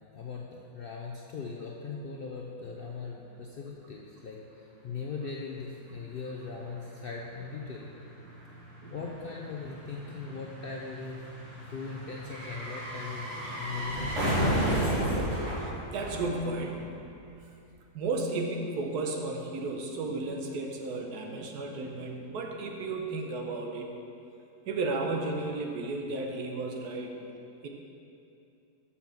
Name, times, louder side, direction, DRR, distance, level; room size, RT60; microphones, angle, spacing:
voice 1, 0.1-7.9 8.9-11.2 11.5-14.7, left 4 dB, 60° left, -2 dB, 0.6 m, -40 dB
sound 1, 6.2-6.3 6.5-16.9 17.2-17.3, right 1 dB, 50° right, 2.6 m, -33 dB
voice 2, 15.6-17.0 17.9-23.9 24.7-27.1 27.6-27.7, right 3 dB, 85° right, 2 dB, 1.4 m, -34 dB
7.1 x 5.8 x 5.9 m, 2.7 s
omnidirectional pair, 1.6 m